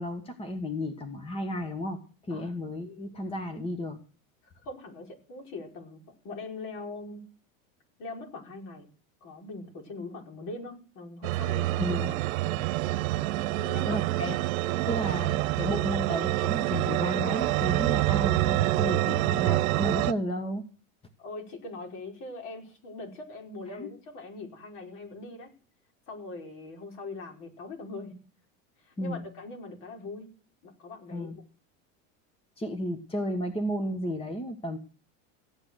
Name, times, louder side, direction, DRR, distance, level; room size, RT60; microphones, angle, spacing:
voice 1, 0.0-2.0 2.3-4.0 11.8-12.1 13.8-14.4 14.9-20.6 23.7-23.9 29.0-29.3 31.1-31.4 32.6-34.8, equal, 15° left, 9 dB, 1.5 m, -33 dB
voice 2, 4.4-7.2 8.0-8.9 9.2-12.2 13.5-14.0 21.2-25.5 26.1-28.2 28.8-30.3 30.6-31.4, left 3 dB, 50° left, 2 dB, 5.2 m, -41 dB
sound 1, 11.2-20.1, right 17 dB, 80° right, 1.0 m, -27 dB
16.0 x 9.8 x 6.5 m, 0.38 s
supercardioid pair, 140°, 41 cm